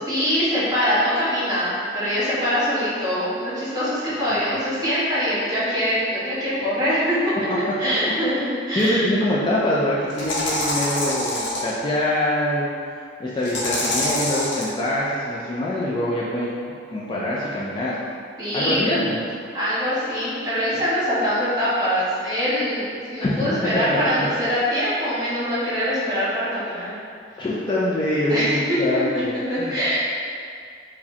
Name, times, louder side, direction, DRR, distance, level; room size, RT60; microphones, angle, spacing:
voice 1, 0.1-7.4 7.8-9.1 18.4-18.8 19.5-26.9 28.3-29.0 29.3-30.1, equal, 20° right, -11 dB, 1.2 m, -23 dB
voice 2, 8.7-12.7 13.2-16.5 16.9-18.0 18.5-19.2 23.2-23.6 23.9-24.3 27.4-29.7, left 1 dB, 25° left, -7 dB, 0.3 m, -24 dB
sound 1, 8.8-8.9 10.1-11.7 13.4-14.7, left 1 dB, 70° left, 0.8 m, -25 dB
4.7 x 2.1 x 2.7 m, 2.3 s
head